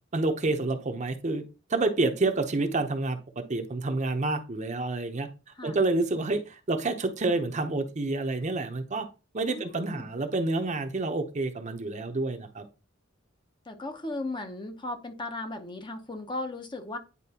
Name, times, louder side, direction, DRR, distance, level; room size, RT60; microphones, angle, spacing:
voice 1, 0.1-1.4 1.7-5.3 5.6-9.1 9.3-12.6, right 2 dB, 40° right, 0.7 m, -28 dB
voice 2, 9.5-10.1 13.7-17.0, left 2 dB, 25° left, 0.8 m, -36 dB
9.8 x 4.2 x 2.8 m
head